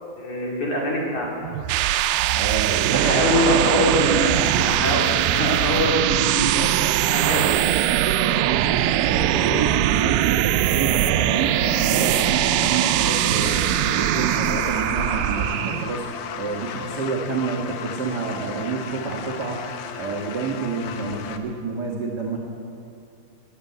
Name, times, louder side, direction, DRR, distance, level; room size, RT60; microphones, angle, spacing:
voice 1, 0.2-1.3 2.9-6.7 7.0-7.5, left 1 dB, 50° left, -3 dB, 4.1 m, -24 dB
sound 1, 1.4-16.0, right 13 dB, 85° right, 2.0 m, -21 dB
voice 2, 2.3-3.4 7.9-22.4, right 4 dB, 70° right, -2 dB, 0.9 m, -28 dB
sound 2, 11.0-21.4, left 7 dB, 80° left, 1.6 m, -35 dB
19.5 x 9.3 x 8.0 m, 2.5 s
omnidirectional pair, 4.4 m